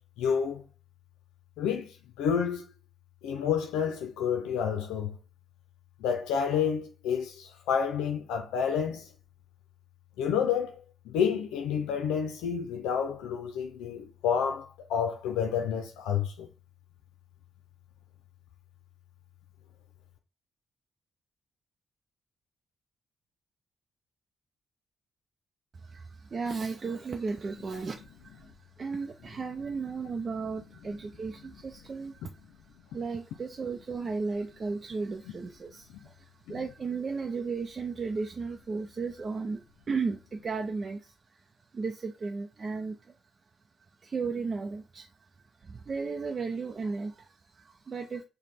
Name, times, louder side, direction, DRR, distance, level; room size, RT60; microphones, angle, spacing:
voice 1, 0.2-0.7 1.6-2.6 3.2-5.2 6.0-9.1 10.2-10.8 11.1-16.5 36.5-36.6, left 7 dB, 90° left, 0.5 m, -29 dB
voice 2, 25.7-43.1 44.0-48.2, right 4 dB, 45° right, 0.5 m, -35 dB
5.1 x 2.2 x 4.2 m
supercardioid pair, 55°, 0 cm